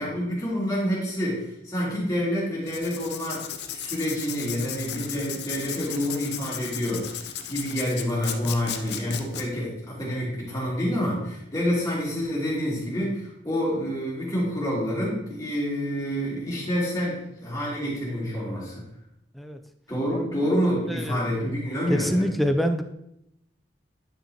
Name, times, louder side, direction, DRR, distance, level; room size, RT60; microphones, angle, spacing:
voice 1, 0.0-3.5 3.7-18.8 19.9-22.3, equal, 20° left, -7 dB, 2.8 m, -28 dB
Writing, 2.6-9.4, left 9 dB, 65° left, 0.6 m, -35 dB
voice 2, 20.1-21.2 21.9-22.8, equal, ahead, 6 dB, 0.4 m, -27 dB
10.0 x 5.6 x 2.9 m, 0.82 s
head